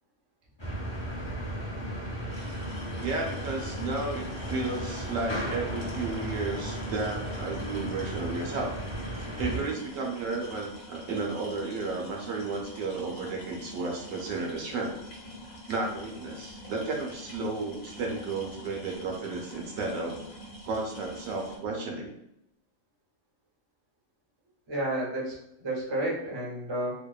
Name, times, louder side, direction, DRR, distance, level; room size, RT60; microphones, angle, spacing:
sound 1, 0.6-9.6, right 1 dB, 30° left, 0.5 m, -35 dB
sound 2, 2.3-21.6, left 1 dB, 80° left, 1.1 m, -46 dB
voice 1, 3.0-8.8 9.4-15.0 15.7-20.2 20.7-22.1, right 3 dB, 75° right, 1 dB, 0.9 m, -33 dB
voice 2, 24.7-25.3 25.6-26.9, right 1 dB, 35° right, -4 dB, 0.5 m, -31 dB
2.8 x 2.0 x 2.3 m, 0.80 s
omnidirectional pair, 1.4 m